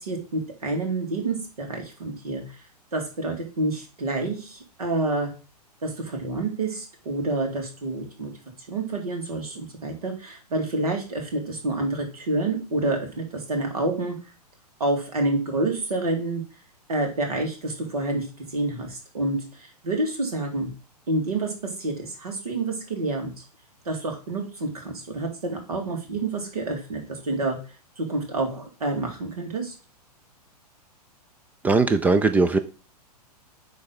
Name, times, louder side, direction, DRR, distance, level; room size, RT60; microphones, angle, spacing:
voice 1, 0.0-2.4 2.9-5.3 5.8-8.3 8.7-14.2 14.8-16.4 16.9-20.7 21.1-21.5 21.8-23.3 23.9-27.6 28.0-29.7, right 2 dB, 65° right, 2.4 m, -28 dB
voice 2, 31.6-32.6, right 3 dB, 10° right, 0.3 m, -19 dB
9.6 x 3.4 x 4.0 m
figure-of-eight pair, 105°, 20 cm